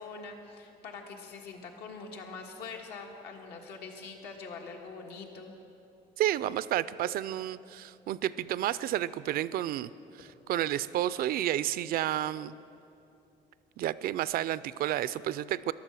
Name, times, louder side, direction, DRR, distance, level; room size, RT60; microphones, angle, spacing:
voice 1, 0.0-5.5, left 4 dB, 80° left, 2 dB, 1.6 m, -44 dB
voice 2, 6.2-9.9 10.2-12.5 13.8-15.7, right 12 dB, 60° right, 17 dB, 0.4 m, -31 dB
14.0 x 11.5 x 6.3 m, 2.7 s
cardioid pair, 110°, 17 cm